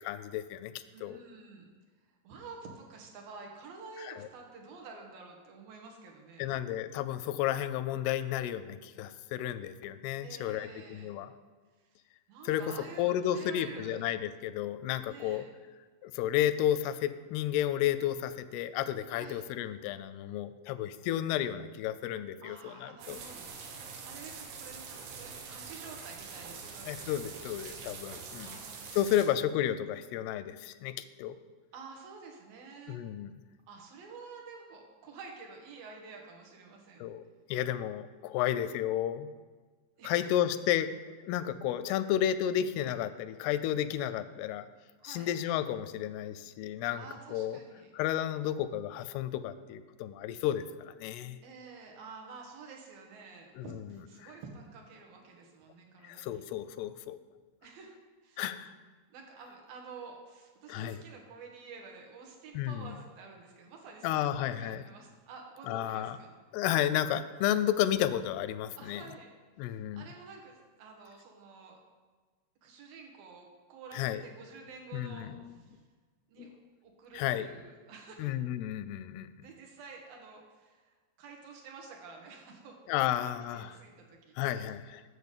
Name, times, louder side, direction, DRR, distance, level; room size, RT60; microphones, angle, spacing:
voice 1, 0.0-0.7 1.0-1.2 4.0-4.1 6.4-11.3 12.5-12.6 13.0-15.4 16.0-23.2 26.9-28.6 28.9-30.9 31.2-31.4 32.9-33.3 37.0-37.2 37.5-39.3 40.0-40.9 41.2-44.7 45.0-47.1 47.3-47.6 47.9-51.4 53.6-53.7 54.2-54.3 56.0-57.2 58.4-58.7 60.7-61.0 62.5-63.0 64.0-64.8 65.7-66.2 66.5-69.0 69.6-70.0 74.0-74.2 74.9-75.3 76.4-76.5 77.1-77.5 78.2-79.3 82.9-83.8 84.4-85.0, left 11 dB, 85° left, 12 dB, 2.5 m, -32 dB
voice 2, 0.9-1.7 2.2-6.5 10.2-11.2 11.8-12.0 12.3-14.1 15.1-15.5 19.2-19.4 22.4-23.8 24.0-27.8 28.3-29.3 31.7-33.0 33.7-37.1 40.0-40.3 45.0-45.3 47.0-47.9 51.4-56.4 57.6-58.5 59.1-66.3 68.8-69.3 69.6-71.8 72.6-75.8 76.3-76.5 76.8-78.3 79.4-83.1 83.5-84.7, right 4 dB, 70° right, 1 dB, 3.0 m, -50 dB
sound 1, 23.0-29.3, right 5 dB, 85° right, 3.2 m, -44 dB
8.2 x 7.0 x 6.7 m, 1.4 s
omnidirectional pair, 4.5 m